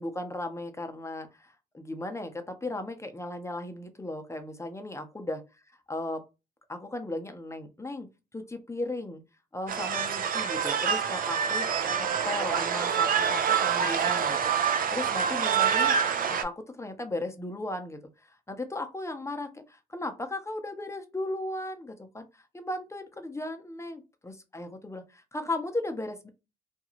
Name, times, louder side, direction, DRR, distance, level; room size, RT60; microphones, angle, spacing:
voice 1, 0.0-5.4 5.9-6.2 6.7-8.1 8.3-9.2 9.5-14.4 14.9-16.0 16.3-18.0 18.3-26.3, left 2 dB, 15° left, 7 dB, 0.7 m, -36 dB
sound 1, 9.7-16.4, right 7 dB, 50° right, 0.5 m, -26 dB
2.5 x 2.2 x 3.0 m, 0.27 s
hypercardioid pair, 50°, 19 cm